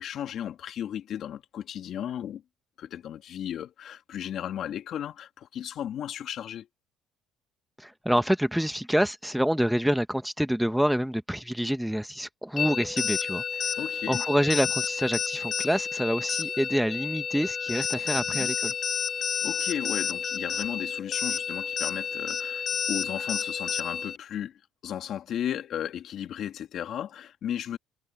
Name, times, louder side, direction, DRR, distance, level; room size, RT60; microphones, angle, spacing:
voice 1, 0.0-2.4 2.8-6.7 13.8-14.2 18.1-18.5 19.4-27.8, left 10 dB, 55° left, 2.5 m, -35 dB
voice 2, 7.8-13.7 14.1-18.7, equal, ahead, 1.1 m, -27 dB
sound 1, 12.6-24.2, left 7 dB, 40° left, 0.7 m, -30 dB
cardioid pair, 105°, 0 cm